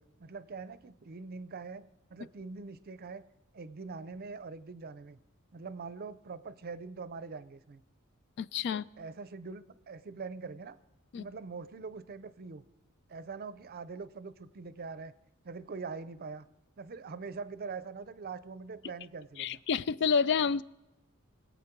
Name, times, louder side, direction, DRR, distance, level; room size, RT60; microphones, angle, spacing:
voice 1, 0.0-3.2 3.5-5.2 5.5-7.8 8.7-10.8 11.2-12.6 13.1-15.1 15.4-16.5 16.8-19.6, right 4 dB, 45° right, 15 dB, 0.5 m, -43 dB
voice 2, 8.4-8.8 11.1-11.2 19.4-20.6, left 6 dB, 55° left, 19 dB, 0.3 m, -29 dB
23.0 x 8.3 x 4.5 m, 0.98 s
head